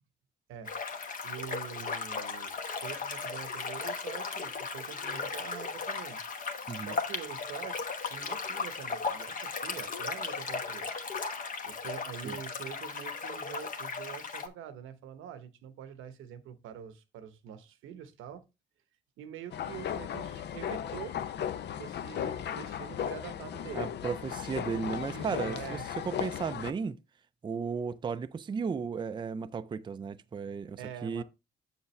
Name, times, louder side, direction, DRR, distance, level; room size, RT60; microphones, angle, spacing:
sound 1, 0.6-14.5, left 4 dB, 45° left, 1.1 m, -36 dB
voice 1, 1.2-6.2 6.7-11.1 11.6-18.4 19.2-21.2 21.8-23.9 25.0-25.9 30.8-31.2, right 9 dB, 90° right, 0.9 m, -45 dB
sound 2, 19.5-26.7, left 9 dB, 60° left, 0.6 m, -36 dB
voice 2, 23.7-27.0 27.4-31.2, right 5 dB, 25° right, 0.4 m, -35 dB
7.1 x 6.7 x 3.1 m
cardioid pair, 90°, 20 cm